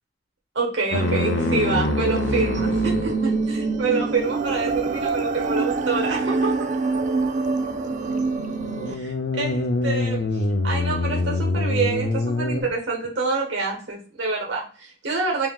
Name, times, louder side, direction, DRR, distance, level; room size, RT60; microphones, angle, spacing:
voice 1, 0.5-6.7 8.9-15.5, right 3 dB, 80° right, 1.2 m, -27 dB
sound 1, 0.9-3.3 8.6-12.6, left 2 dB, 70° left, 0.6 m, -25 dB
sound 2, 0.9-8.9, right 3 dB, 45° right, 0.4 m, -25 dB
5.4 x 2.8 x 2.3 m
head